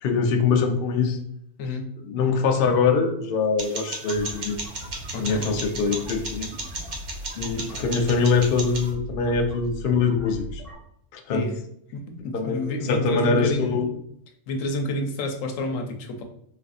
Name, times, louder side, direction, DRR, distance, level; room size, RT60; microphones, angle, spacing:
voice 1, 0.0-1.2 2.0-4.6 5.2-6.5 7.3-10.6 11.1-11.5 12.3-13.9, left 4 dB, 60° left, 4 dB, 0.6 m, -23 dB
sound 1, 3.6-8.9, right 2 dB, 50° right, 0.6 m, -36 dB
sound 2, 3.6-10.8, equal, 70° right, 1.5 m, -39 dB
voice 2, 5.1-5.4 11.3-11.5 11.9-13.8 14.5-16.2, left 2 dB, 85° left, 4 dB, 1.0 m, -29 dB
4.1 x 2.6 x 2.3 m, 0.70 s
omnidirectional pair, 1.3 m